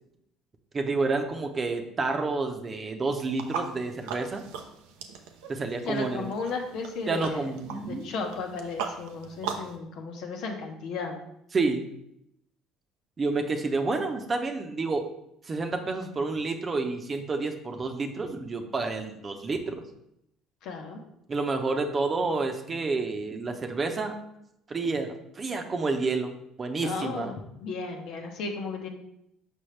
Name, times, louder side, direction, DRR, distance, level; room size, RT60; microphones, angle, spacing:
voice 1, 0.7-4.4 5.5-6.3 7.1-8.1 11.5-11.9 13.2-15.1 15.4-19.8 21.3-24.2 24.7-26.3 26.6-27.3, right 3 dB, 35° right, 5 dB, 0.8 m, -29 dB
sound 1, 3.3-9.8, right 6 dB, 80° right, 0.6 m, -39 dB
voice 2, 5.8-11.2 20.6-21.0 26.8-27.4 27.6-28.9, left 4 dB, 70° left, 3 dB, 1.0 m, -35 dB
6.4 x 5.2 x 3.3 m, 0.79 s
hypercardioid pair, 70°, 0 cm